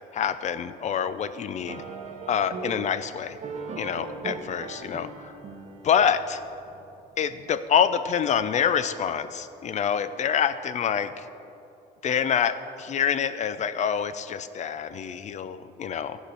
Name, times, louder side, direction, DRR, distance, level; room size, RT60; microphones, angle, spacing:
voice 1, 0.1-1.8 2.3-3.4 3.8-5.4 5.8-6.4 7.2-11.3 12.0-16.2, left 8 dB, 45° left, 13 dB, 0.5 m, -26 dB
sound 1, 1.7-6.9, right 5 dB, 40° right, 1.1 m, -39 dB
15.0 x 5.0 x 6.2 m, 2.8 s
cardioid pair, 110°, 17 cm